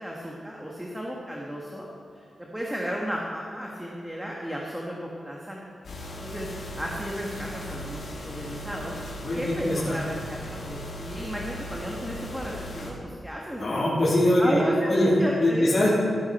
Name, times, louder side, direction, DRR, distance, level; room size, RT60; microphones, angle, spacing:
voice 1, 0.0-1.9 2.1-2.3 2.5-5.6 6.2-9.0 9.3-13.7 14.4-15.8, equal, 5° right, -2 dB, 1.5 m, -33 dB
sound 1, 5.8-12.9, left 1 dB, 70° left, 3.4 m, -38 dB
voice 2, 9.2-10.0 13.6-15.1 15.4-16.0, left 1 dB, 45° left, -11 dB, 3.7 m, -23 dB
16.5 x 10.5 x 4.3 m, 2.6 s
wide cardioid pair, 125°, 0 cm